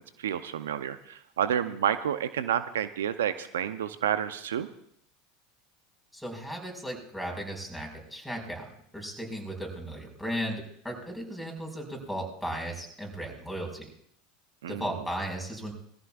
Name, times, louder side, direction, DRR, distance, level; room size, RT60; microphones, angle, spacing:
voice 1, 0.2-4.7 14.6-14.8, right 9 dB, 80° right, 12 dB, 0.6 m, -29 dB
voice 2, 6.1-8.7 8.9-13.9 14.7-15.7, equal, ahead, 1 dB, 5.1 m, -36 dB
21.0 x 14.5 x 2.4 m, 0.67 s
hypercardioid pair, 85°, 0 cm